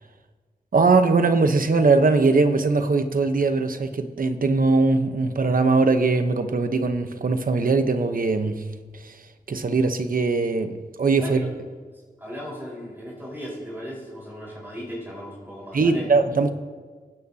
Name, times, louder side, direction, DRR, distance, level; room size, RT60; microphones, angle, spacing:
voice 1, 0.7-8.6 8.9-9.1 9.5-11.5 15.7-16.5, right 3 dB, 60° right, 8 dB, 1.0 m, -21 dB
voice 2, 12.2-16.1, equal, 15° right, -6 dB, 4.5 m, -36 dB
25.5 x 9.6 x 2.8 m, 1.5 s
wide cardioid pair, 85°, 16 cm